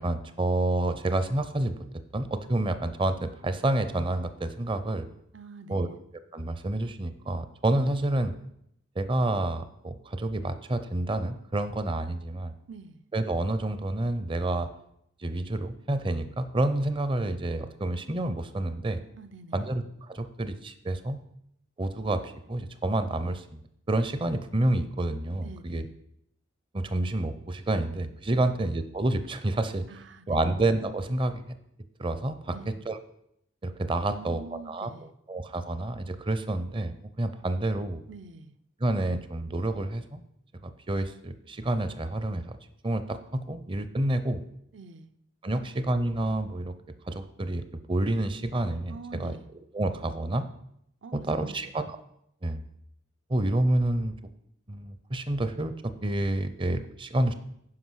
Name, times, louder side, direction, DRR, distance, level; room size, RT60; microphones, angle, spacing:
voice 1, 0.0-1.8 2.1-5.1 5.7-5.9 6.3-8.3 9.0-12.5 13.1-14.7 15.2-19.0 19.5-21.2 21.8-23.6 23.9-25.8 26.7-29.8 30.3-31.5 32.0-32.6 32.9-33.0 33.6-34.4 34.7-34.9 35.3-38.0 38.8-40.2 40.6-42.6 42.8-44.4 45.4-46.7 47.1-47.6 47.9-49.4 49.7-50.4 51.1-51.8 52.4-52.6 53.3-54.1 54.7-57.3, right 1 dB, 25° right, 11 dB, 0.6 m, -28 dB
voice 2, 5.3-6.0 12.7-13.0 19.2-19.7 25.4-25.9 28.3-28.5 29.9-30.5 32.5-32.7 34.1-35.1 38.1-38.6 44.7-45.1 45.5-45.6 48.9-49.5 51.0-51.7, right 4 dB, 65° right, 11 dB, 0.6 m, -45 dB
9.7 x 5.4 x 6.3 m, 0.75 s
head